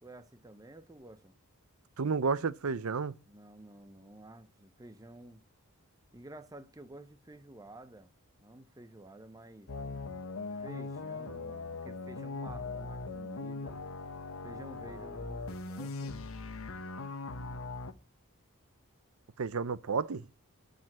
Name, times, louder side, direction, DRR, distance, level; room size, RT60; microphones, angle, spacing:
voice 1, 0.0-1.4 3.3-5.4 6.1-8.1 8.4-9.7 10.4-13.8 14.4-16.2, right 1 dB, 15° right, 0.7 m, -51 dB
voice 2, 2.0-3.2 19.4-20.3, right 5 dB, 70° right, 0.6 m, -31 dB
sound 1, 9.7-17.9, left 3 dB, 65° left, 1.0 m, -40 dB
12.0 x 5.1 x 7.4 m
head